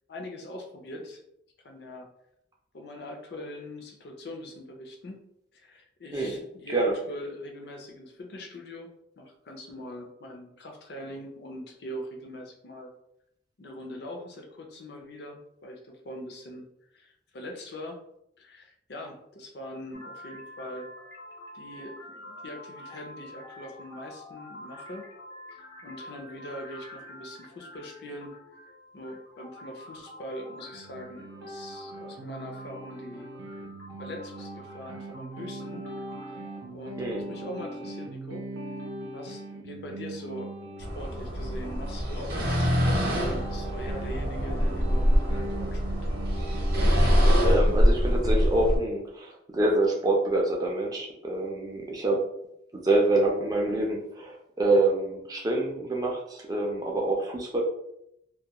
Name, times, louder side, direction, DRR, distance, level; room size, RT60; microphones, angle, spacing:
voice 1, 0.1-1.2 1.6-2.1 2.7-5.3 5.5-12.9 13.6-18.0 18.4-20.9 21.5-25.0 25.5-28.4 28.9-33.3 34.0-35.9 36.3-36.4 36.7-38.5 39.1-45.9, left 1 dB, 55° left, 2 dB, 0.5 m, -42 dB
sound 1, 19.9-36.7, left 1 dB, 80° left, 1.0 m, -47 dB
sound 2, 30.7-47.3, right 2 dB, 85° right, 0.5 m, -40 dB
sound 3, 40.8-48.8, equal, 50° right, 0.7 m, -24 dB
voice 2, 47.0-52.2 52.7-57.6, right 2 dB, 20° right, -1 dB, 0.3 m, -26 dB
2.2 x 2.2 x 2.8 m, 0.78 s
head